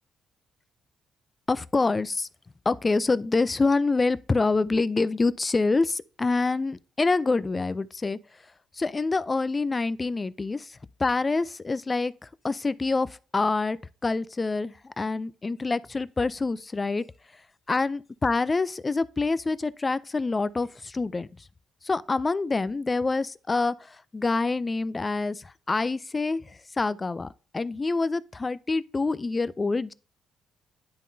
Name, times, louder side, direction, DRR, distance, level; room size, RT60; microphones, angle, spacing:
voice 1, 1.5-2.3 2.7-8.2 8.8-10.7 11.0-12.1 12.4-13.8 14.0-17.0 17.7-21.3 21.8-27.3 27.5-29.9, left 3 dB, 25° left, 0.4 m, -26 dB
10.5 x 3.7 x 2.7 m
cardioid pair, 90°, 0 cm